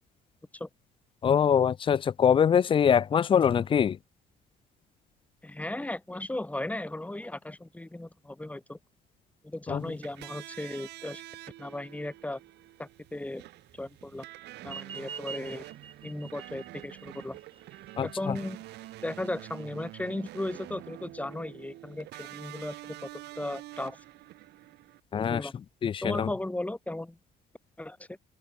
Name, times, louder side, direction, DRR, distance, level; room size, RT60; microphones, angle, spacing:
voice 1, 1.2-4.0 9.7-9.8 18.0-18.4 25.1-25.4 25.8-26.3, left 8 dB, 30° left, 0.4 m, -23 dB
voice 2, 5.4-8.8 9.4-11.2 11.6-12.4 12.8-13.5 13.7-14.3 14.6-15.6 16.0-17.4 18.0-18.6 19.0-23.0 23.3-24.0 25.1-25.5 26.0-27.2 27.8-28.2, left 1 dB, 10° left, 2.9 m, -36 dB
sound 1, 9.8-25.0, right 17 dB, 80° right, 7.8 m, -47 dB
sound 2, 14.6-19.6, right 6 dB, 30° right, 2.2 m, -46 dB
open air
cardioid pair, 110°, 17 cm